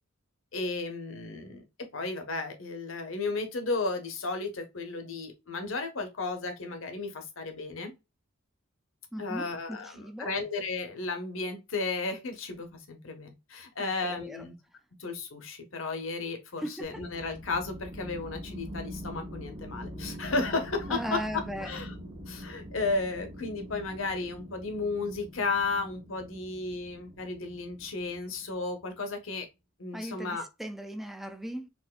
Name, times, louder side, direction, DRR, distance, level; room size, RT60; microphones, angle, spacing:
voice 1, 0.5-1.6 1.9-7.9 9.2-14.5 15.0-21.2 21.6-21.9 22.3-29.5 29.8-30.4, left 3 dB, 70° left, 1.0 m, -34 dB
voice 2, 9.1-10.4 14.0-14.4 16.6-17.0 20.9-21.7 29.9-31.7, equal, ahead, 0.4 m, -38 dB
sound 1, 16.8-28.9, equal, 30° right, 1.0 m, -44 dB
4.2 x 2.6 x 2.3 m
head